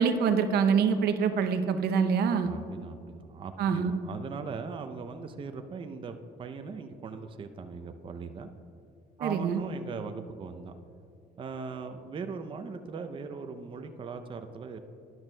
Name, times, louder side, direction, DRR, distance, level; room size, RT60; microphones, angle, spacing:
voice 1, 0.0-2.5 3.6-3.9 9.2-9.6, right 6 dB, 70° right, 8 dB, 0.6 m, -25 dB
voice 2, 2.4-8.5 9.2-10.7 11.4-14.8, right 5 dB, 30° right, 7 dB, 0.5 m, -39 dB
12.5 x 10.5 x 2.2 m, 2.6 s
cardioid pair, 110°, 17 cm